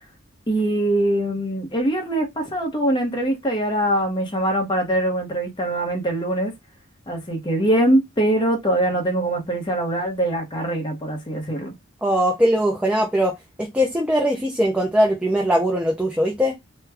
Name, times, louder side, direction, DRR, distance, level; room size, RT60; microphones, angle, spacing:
voice 1, 0.5-6.5 7.1-11.7, right 1 dB, 25° left, 0.9 m, -22 dB
voice 2, 12.0-16.6, equal, 5° right, 0.4 m, -21 dB
3.2 x 2.2 x 3.3 m
head